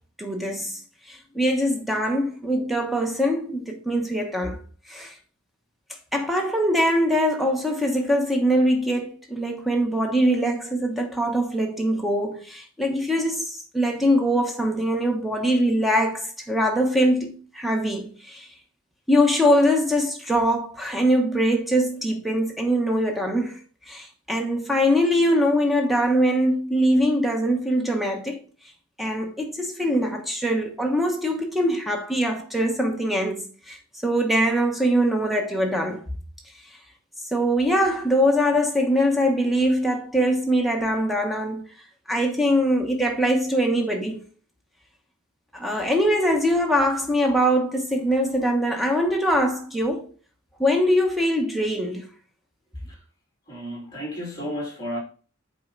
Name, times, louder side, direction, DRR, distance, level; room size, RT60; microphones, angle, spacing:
voice 1, 0.2-0.8 1.1-4.6 4.9-5.1 6.1-18.5 19.1-23.6 23.9-28.4 29.0-33.8 34.0-36.0 37.3-41.6 42.1-44.2 45.5-50.1 50.6-52.0, equal, ahead, 1.0 m, -22 dB
voice 2, 53.5-55.0, equal, 15° left, 2.7 m, -32 dB
7.7 x 4.4 x 3.9 m
head